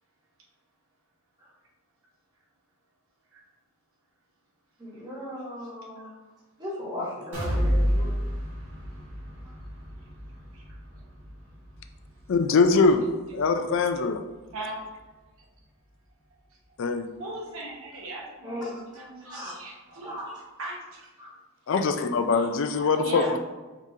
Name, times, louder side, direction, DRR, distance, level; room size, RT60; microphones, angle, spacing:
voice 1, 4.8-6.1 6.6-8.2 17.3-17.4 18.4-18.7 19.3-19.5 20.0-20.4 21.2-21.3 22.3-22.4 22.7-23.2, left 1 dB, 20° right, -6 dB, 1.2 m, -37 dB
sound 1, 7.3-15.1 15.5-15.6 16.0-16.1, equal, 90° right, 1.4 m, -32 dB
voice 2, 12.3-13.1 13.3-14.2 16.8-17.1 21.7-23.4, left 4 dB, 60° left, 7 dB, 0.4 m, -22 dB
voice 3, 17.2-18.6 18.9-20.2 20.6-21.1 22.8-23.3, right 2 dB, 75° right, -2 dB, 1.0 m, -38 dB
4.8 x 3.7 x 2.7 m, 1.2 s
head